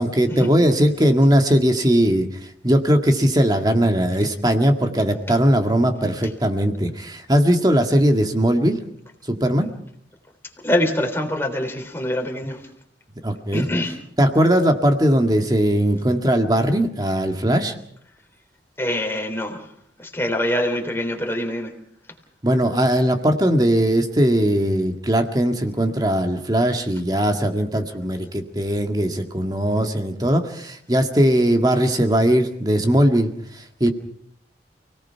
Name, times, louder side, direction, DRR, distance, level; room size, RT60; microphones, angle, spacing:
voice 1, 0.0-2.3 2.6-8.8 9.3-9.7 13.2-13.7 14.2-17.7 22.4-33.3 33.5-33.9, equal, 20° right, 5 dB, 2.0 m, -19 dB
voice 2, 10.6-12.6 13.5-13.9 18.8-19.7 20.0-21.7, left 1 dB, 15° left, 3 dB, 3.5 m, -24 dB
29.5 x 18.5 x 5.9 m, 0.68 s
head